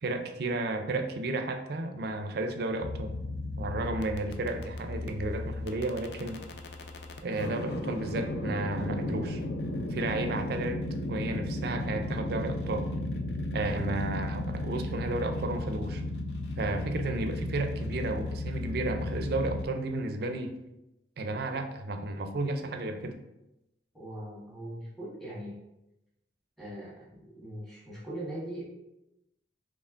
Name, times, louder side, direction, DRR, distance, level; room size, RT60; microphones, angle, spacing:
voice 1, 0.0-3.2 3.6-6.4 7.2-9.4 9.9-10.8 11.1-12.9 13.5-16.0 16.6-20.5 21.2-23.2, right 2 dB, 60° right, 6 dB, 0.4 m, -33 dB
sound 1, 2.8-19.7, left 1 dB, 65° left, 0.4 m, -35 dB
voice 2, 23.9-25.6 26.6-28.6, right 1 dB, ahead, -8 dB, 1.4 m, -40 dB
4.4 x 3.0 x 2.5 m, 0.90 s
head